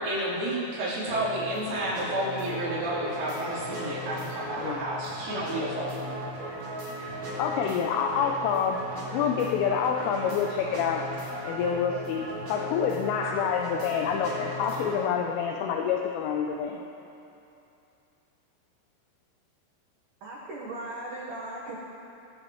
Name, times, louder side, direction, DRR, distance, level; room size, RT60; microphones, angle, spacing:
voice 1, 0.0-6.2, right 1 dB, 70° right, -9 dB, 6.4 m, -31 dB
sound 1, 1.1-15.1, equal, 45° right, 2.6 m, -37 dB
voice 2, 4.6-4.9 7.4-8.8 9.1-11.1 11.5-16.8, left 7 dB, 80° left, 2 dB, 3.1 m, -27 dB
voice 3, 20.2-21.8, right 2 dB, 90° right, -4 dB, 1.8 m, -37 dB
22.0 x 14.5 x 3.1 m, 2.8 s
omnidirectional pair, 5.9 m